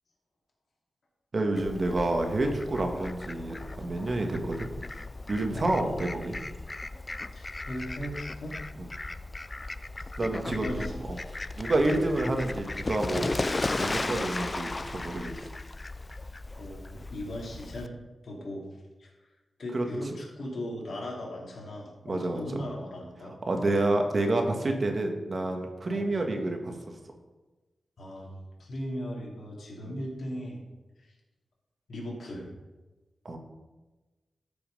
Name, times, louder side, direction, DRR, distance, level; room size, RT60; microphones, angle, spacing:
voice 1, 1.3-4.7 5.3-6.4 8.8-8.9 10.2-11.2 11.5-13.3 13.7-15.5 19.7-19.8 22.0-22.4 23.5-26.9 29.8-29.9 33.2-33.4, right 2 dB, 45° right, 4 dB, 1.5 m, -29 dB
Fowl, 1.6-17.9, left 2 dB, 30° left, 0.4 m, -36 dB
voice 2, 7.3-8.6 10.2-11.0 11.6-11.8 16.6-17.9 18.2-18.7 19.0-19.3 19.6-23.3 25.9-26.1 28.0-28.3 28.6-30.6 31.0-31.1 31.9-32.5, equal, 65° left, -2 dB, 2.8 m, -38 dB
13.0 x 5.7 x 5.4 m, 1.2 s
wide cardioid pair, 90°, 0 cm